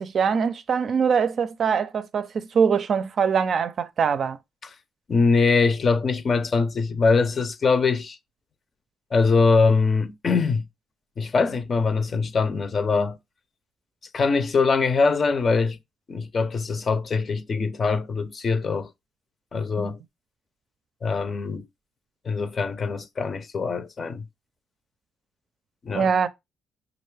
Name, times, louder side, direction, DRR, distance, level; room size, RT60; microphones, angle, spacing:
voice 1, 0.0-4.4 19.8-19.9 25.9-26.3, right 6 dB, 55° right, 0.5 m, -23 dB
voice 2, 5.1-8.2 9.1-10.6 11.2-13.2 14.1-15.8 16.1-18.9 19.5-20.0 21.0-21.7 22.2-24.2 25.8-26.1, left 4 dB, 40° left, 0.6 m, -22 dB
5.3 x 2.4 x 3.3 m
cardioid pair, 90°, 0 cm